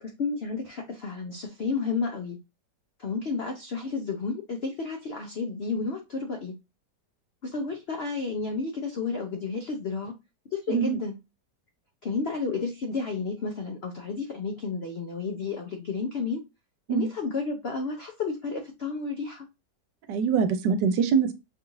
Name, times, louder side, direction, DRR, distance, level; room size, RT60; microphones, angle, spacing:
voice 1, 0.0-2.4 3.0-6.6 7.4-10.1 10.5-11.2 12.0-16.4 16.9-19.5, left 4 dB, 70° left, 0.5 m, -31 dB
voice 2, 20.1-21.3, right 6 dB, 80° right, 1.3 m, -24 dB
5.8 x 2.5 x 3.1 m
omnidirectional pair, 1.9 m